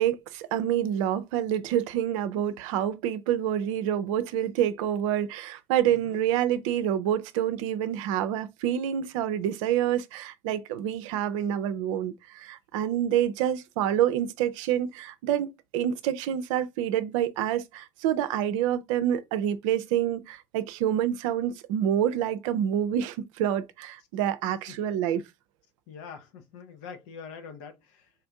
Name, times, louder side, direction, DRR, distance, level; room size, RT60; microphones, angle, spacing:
voice 1, 0.0-25.2, right 10 dB, 75° right, 0.5 m, -27 dB
voice 2, 5.9-6.2 24.7-24.8 25.9-28.1, left 6 dB, 70° left, 0.8 m, -44 dB
4.2 x 2.6 x 3.3 m
hypercardioid pair, 55°, 17 cm